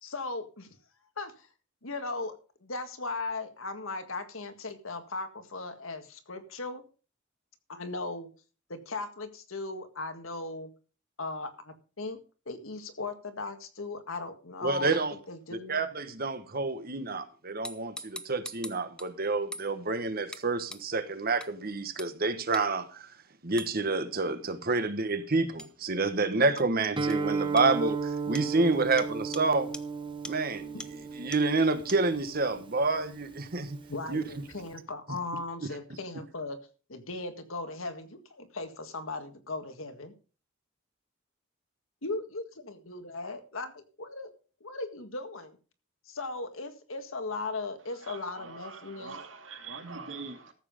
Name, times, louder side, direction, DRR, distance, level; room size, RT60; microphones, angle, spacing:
voice 1, 0.0-0.7 1.2-1.5 1.8-6.8 7.7-8.3 8.7-10.7 11.2-12.2 12.5-15.0 15.3-15.8 32.5-32.7 33.9-36.6 36.9-40.1 42.0-44.3 44.6-45.6 46.1-49.2, left 3 dB, 80° left, 1.8 m, -38 dB
voice 2, 14.6-15.1 15.7-23.1 23.4-29.7 30.3-33.8 34.1-34.2 35.1-35.2, right 3 dB, 45° right, 1.3 m, -28 dB
sound 1, 17.6-19.1 19.5-19.7 20.3-20.4 20.7-20.8 21.4-21.5 22.0-22.1 22.5-22.6 23.6-23.7 25.6-25.7 26.6-26.7 27.1-27.2 27.6-27.7 28.3-28.5 29.0-29.1 29.3-29.4 29.7-29.8 30.2-30.3 30.8-30.9 31.3-31.4 31.9-32.0, left 1 dB, 5° left, 0.7 m, -41 dB
Guitar, 27.0-34.7, right 4 dB, 25° right, 0.9 m, -35 dB
voice 3, 48.0-50.5, right 4 dB, 65° right, 2.4 m, -43 dB
14.0 x 7.5 x 5.1 m
head